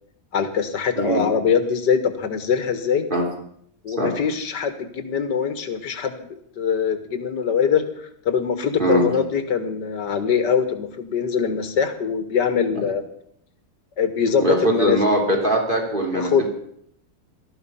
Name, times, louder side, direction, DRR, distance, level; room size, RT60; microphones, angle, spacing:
voice 1, 0.3-3.1 3.8-13.0 14.0-15.0 16.1-16.5, left 7 dB, 75° left, 9 dB, 2.2 m, -23 dB
voice 2, 14.4-16.5, right 1 dB, 30° right, 0 dB, 3.7 m, -21 dB
17.5 x 14.0 x 5.7 m, 0.69 s
omnidirectional pair, 1.8 m